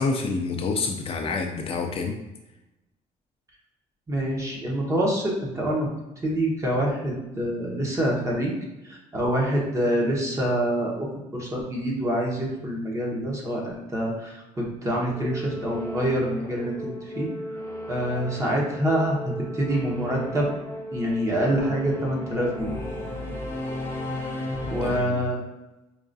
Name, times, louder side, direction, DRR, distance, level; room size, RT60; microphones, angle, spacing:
voice 1, 0.0-2.1 24.8-25.3, left 4 dB, 45° left, 3 dB, 0.4 m, -28 dB
voice 2, 4.1-5.9 6.2-8.5 8.9-11.1 11.3-17.3 17.9-19.2 19.5-20.5 20.9-22.7 24.7-25.4, right 1 dB, 20° right, -2 dB, 1.0 m, -26 dB
Singing / Musical instrument, 15.1-25.0, left 1 dB, 15° left, 0.7 m, -35 dB
4.7 x 2.4 x 2.6 m, 0.99 s
cardioid pair, 125°, 14 cm